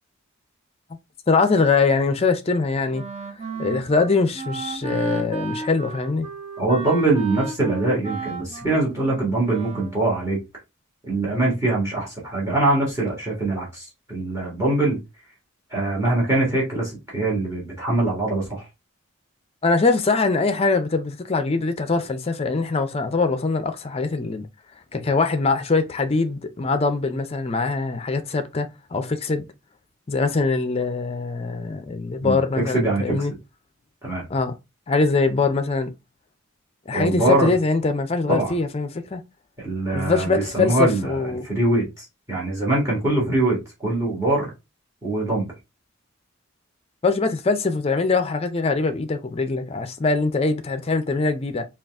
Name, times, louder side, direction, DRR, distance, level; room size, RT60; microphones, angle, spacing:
voice 1, 1.3-3.0 3.6-6.3 19.6-24.5 24.9-29.4 30.1-33.3 34.3-34.5 34.9-35.9 36.9-39.2 39.9-41.5 47.0-51.6, left 3 dB, 30° left, 0.4 m, -22 dB
Wind instrument woodwind instrument, 2.9-10.0, right 3 dB, 30° right, 0.6 m, -33 dB
voice 2, 6.6-10.4 11.0-15.0 15.7-18.7 32.2-33.3 34.0-34.2 36.9-37.5 38.3-38.5 39.6-44.5 45.0-45.5, right 2 dB, 15° right, 1.4 m, -23 dB
3.8 x 2.4 x 3.4 m
head